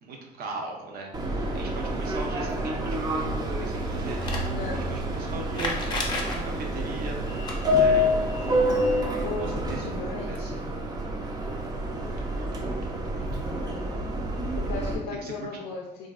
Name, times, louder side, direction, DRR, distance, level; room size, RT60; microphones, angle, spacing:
voice 1, 0.0-4.2 4.7-7.2 7.7-8.4 9.4-9.8 10.1-10.6 11.8-12.8 13.1-13.3 15.2-15.3, right 3 dB, 65° right, 1 dB, 0.7 m, -39 dB
Subway metro underground, 1.1-15.0, equal, 25° right, 0.4 m, -28 dB
sound 1, 3.6-6.9, right 2 dB, 90° right, 1.1 m, -38 dB
sound 2, 4.2-4.5 5.5-6.4 7.3-7.5 10.1-10.2 10.4-10.5 11.6-11.7, left 2 dB, 25° left, 0.6 m, -31 dB
voice 2, 4.5-4.9 8.4-10.7 13.4-13.9 14.5-16.1, left 4 dB, 80° left, -1 dB, 0.5 m, -36 dB
3.4 x 2.6 x 2.3 m, 0.93 s
cardioid pair, 110°, 17 cm